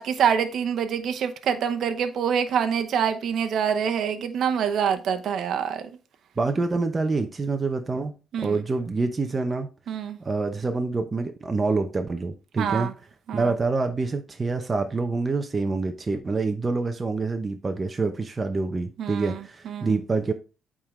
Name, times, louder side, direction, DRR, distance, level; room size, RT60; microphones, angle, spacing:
voice 1, 0.0-5.9 8.3-8.6 9.9-10.2 12.6-12.9 13.3-13.5 19.0-20.0, right 7 dB, 70° right, 0.8 m, -26 dB
voice 2, 6.4-9.7 10.2-12.9 13.3-20.3, right 3 dB, 30° right, 0.7 m, -26 dB
8.6 x 3.7 x 3.2 m
cardioid pair, 90°, 0 cm